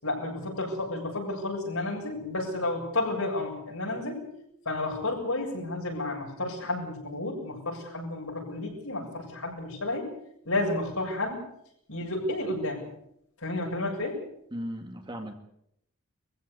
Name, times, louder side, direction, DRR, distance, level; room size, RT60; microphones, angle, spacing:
voice 1, 0.0-4.2 4.7-10.1 10.4-11.4 11.9-12.9 13.4-14.2, left 2 dB, 70° left, 0 dB, 7.4 m, -31 dB
voice 2, 14.5-15.3, equal, 20° right, 4 dB, 2.3 m, -36 dB
23.5 x 15.5 x 8.4 m, 0.75 s
head